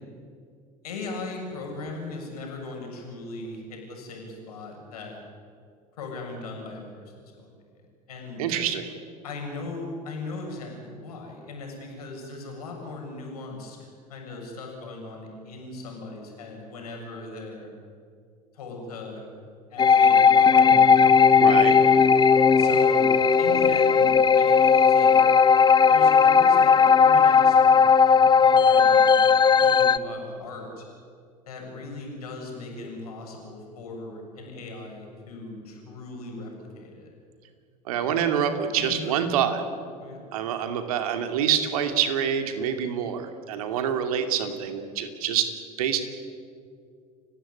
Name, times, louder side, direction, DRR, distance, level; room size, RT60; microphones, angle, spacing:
voice 1, 0.8-5.2 6.0-7.6 8.1-8.4 9.2-17.7 18.5-19.3 19.7-21.1 21.6-21.8 22.6-23.1 23.4-25.2 25.9-29.2 29.6-30.9 31.5-37.1 38.7-39.1 40.0-40.2, left 3 dB, 70° left, 1 dB, 7.1 m, -38 dB
voice 2, 8.4-8.9 21.4-21.8 37.8-39.6 40.3-45.5 45.8-46.0, right 8 dB, 65° right, 7 dB, 2.7 m, -26 dB
sound 1, 19.8-30.0, left 6 dB, 20° left, 0.9 m, -17 dB
29.5 x 16.0 x 9.8 m, 2.2 s
figure-of-eight pair, 75°, 20 cm